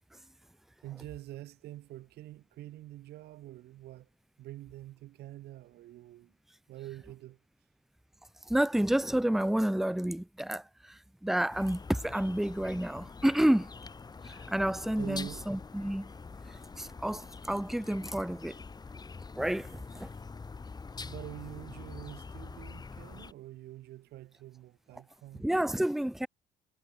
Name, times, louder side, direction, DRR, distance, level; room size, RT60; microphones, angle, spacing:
voice 1, 0.8-4.1 4.4-6.3 6.7-7.4 15.0-15.4 20.1-20.2 21.0-25.5, right 15 dB, 75° right, 2.7 m, -46 dB
voice 2, 8.5-13.7 14.2-16.1 16.8-18.5 19.4-20.1 25.4-26.3, right 1 dB, ahead, 0.8 m, -30 dB
sound 1, 11.5-23.3, left 4 dB, 25° left, 2.5 m, -45 dB
cardioid pair, 110°, 17 cm